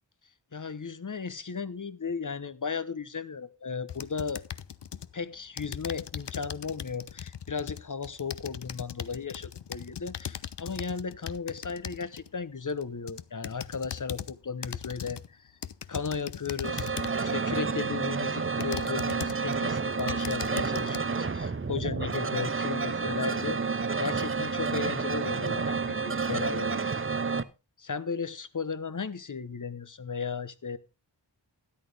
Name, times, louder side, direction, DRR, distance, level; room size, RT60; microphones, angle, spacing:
voice 1, 0.5-4.4 5.1-15.2 15.9-16.9 17.2-26.9 27.8-30.8, left 5 dB, 45° left, 0.9 m, -35 dB
sound 1, 3.9-5.1 5.6-12.3 12.8-14.3 14.6-15.3 15.6-17.3 17.9-18.0 18.6-19.6 19.9-21.0, left 9 dB, 75° left, 0.6 m, -39 dB
sound 2, 16.6-27.4, right 4 dB, 30° right, 0.6 m, -30 dB
13.0 x 10.5 x 3.4 m
wide cardioid pair, 45°, 42 cm